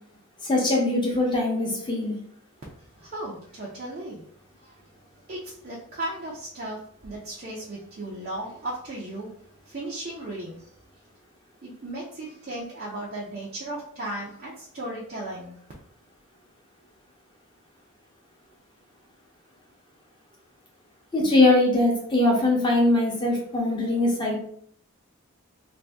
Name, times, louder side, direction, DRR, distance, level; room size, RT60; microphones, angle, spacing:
voice 1, 0.4-2.1 21.1-24.4, left 2 dB, 20° left, -2 dB, 0.8 m, -21 dB
voice 2, 3.0-4.2 4.6-4.8 5.3-9.3 9.6-10.7 11.6-15.5, right 1 dB, 40° right, -4 dB, 0.5 m, -36 dB
2.6 x 2.6 x 3.4 m, 0.64 s
head